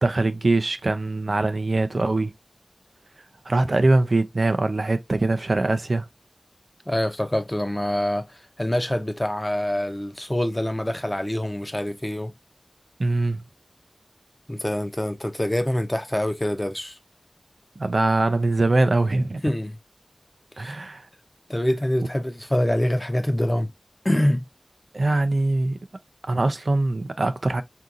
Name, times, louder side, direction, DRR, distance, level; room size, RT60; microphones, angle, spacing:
voice 1, 0.0-2.3 3.5-6.0 13.0-13.4 17.8-19.4 20.6-21.0 24.9-25.8 26.3-27.6, right 2 dB, 80° right, 0.4 m, -22 dB
voice 2, 6.9-12.3 14.5-17.0 19.4-19.8 20.6-20.8 21.5-23.7 24.0-24.4, left 1 dB, 20° left, 0.6 m, -25 dB
3.7 x 2.7 x 2.4 m
wide cardioid pair, 45°, 0 cm